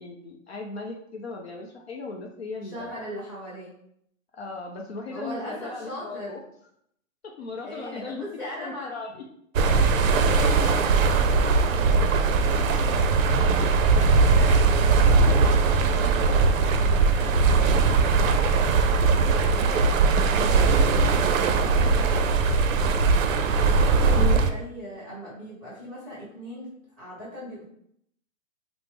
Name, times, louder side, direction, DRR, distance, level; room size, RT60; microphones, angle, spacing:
voice 1, 0.0-2.9 4.4-6.4 7.4-8.2 8.6-9.2 24.1-24.4, left 3 dB, 50° left, 1 dB, 0.5 m, -36 dB
voice 2, 2.6-3.7 5.1-6.4 7.6-8.9 9.7-13.4 13.8-15.3 15.8-18.5 19.3-19.9 20.2-23.0 23.7-27.6, equal, 5° left, -14 dB, 0.6 m, -40 dB
sound 1, 9.5-24.5, right 4 dB, 70° right, 0.5 m, -20 dB
3.3 x 2.0 x 3.2 m, 0.72 s
hypercardioid pair, 165°, 41 cm